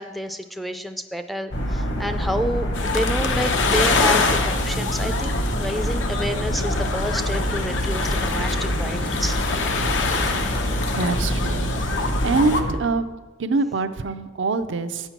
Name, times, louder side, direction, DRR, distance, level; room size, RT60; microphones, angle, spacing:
voice 1, 0.0-9.4, equal, ahead, 7 dB, 0.3 m, -29 dB
sound 1, 1.5-12.7, equal, 65° left, 1.3 m, -26 dB
sound 2, 2.7-12.6, left 4 dB, 90° left, 0.8 m, -26 dB
voice 2, 10.9-11.6 12.0-13.1 13.4-15.1, right 3 dB, 85° right, 9 dB, 0.5 m, -24 dB
8.9 x 5.5 x 5.9 m, 1.2 s
head